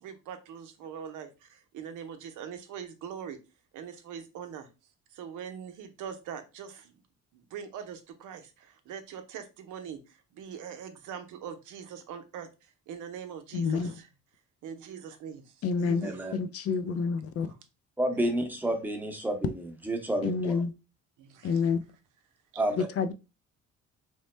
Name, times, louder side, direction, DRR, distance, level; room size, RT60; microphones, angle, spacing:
voice 1, 0.0-3.4 3.7-4.7 5.1-6.9 7.3-14.1 14.6-16.2 16.8-17.1 17.5-17.6 21.2-21.6 22.5-22.6, right 8 dB, 85° right, 0.6 m, -42 dB
voice 2, 13.5-13.9 15.6-17.5 20.2-20.7 21.4-21.8 22.8-23.1, left 5 dB, 55° left, 0.4 m, -28 dB
voice 3, 16.0-16.3 18.0-19.5 19.8-20.6 22.6-22.9, right 1 dB, 5° right, 0.8 m, -29 dB
3.1 x 2.0 x 3.1 m
cardioid pair, 90°, 30 cm